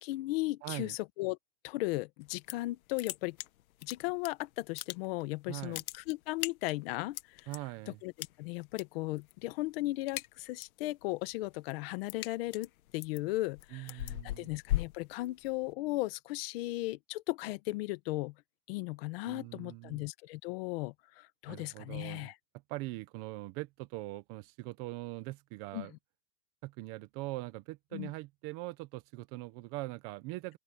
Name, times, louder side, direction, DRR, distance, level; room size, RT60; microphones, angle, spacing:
voice 1, 0.0-1.4 1.6-3.4 3.8-7.5 7.9-8.1 8.4-18.3 18.7-22.3 25.7-25.9 27.9-28.1, left 19 dB, 40° left, 1.3 m, -36 dB
voice 2, 0.6-0.9 5.5-5.8 7.5-8.0 13.7-14.5 19.2-20.1 21.5-22.3 22.7-25.9 26.6-30.6, right 20 dB, 30° right, 0.9 m, -42 dB
sound 1, 2.2-2.7 3.0-4.3 4.6-5.3 5.6-7.6 8.2-8.8 9.1-9.5 9.8-10.8 11.2-15.7, left 15 dB, 70° left, 1.5 m, -38 dB
open air
supercardioid pair, 170°, 43 cm